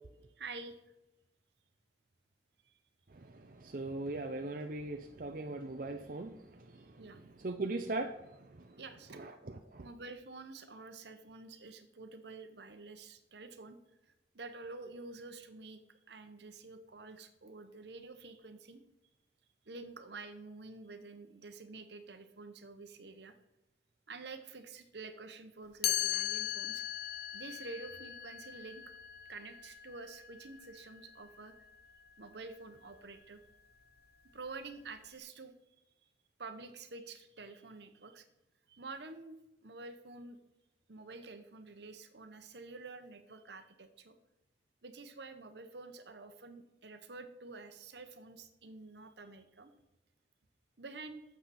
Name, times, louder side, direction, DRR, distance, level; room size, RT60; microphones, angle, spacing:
voice 1, 0.4-0.8 2.6-2.7 7.0-7.2 8.8-9.2 9.8-13.8 14.1-18.8 19.6-23.3 24.1-26.8 27.3-28.8 29.3-31.6 32.2-33.4 34.3-35.5 36.4-38.3 38.7-40.4 40.9-44.2 44.8-49.7 50.8-51.2, right 3 dB, 70° right, 9 dB, 1.0 m, -49 dB
voice 2, 3.1-7.0 7.4-8.8 9.1-9.9, right 2 dB, 50° right, 5 dB, 0.6 m, -40 dB
Chime, 25.8-31.7, left 12 dB, 60° left, 0.8 m, -39 dB
11.5 x 7.6 x 4.3 m, 0.94 s
head